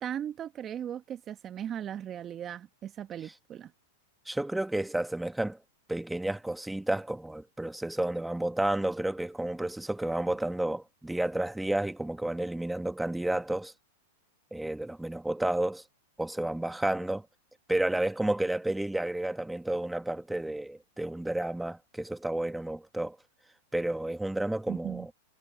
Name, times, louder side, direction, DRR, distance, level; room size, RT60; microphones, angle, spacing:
voice 1, 0.0-3.7 24.7-25.1, right 9 dB, 30° right, 1.2 m, -37 dB
voice 2, 4.3-5.6 5.9-13.7 14.5-15.8 16.2-17.3 17.7-23.2 23.7-25.1, right 1 dB, 5° right, 1.7 m, -31 dB
hypercardioid pair, 110°, 0 cm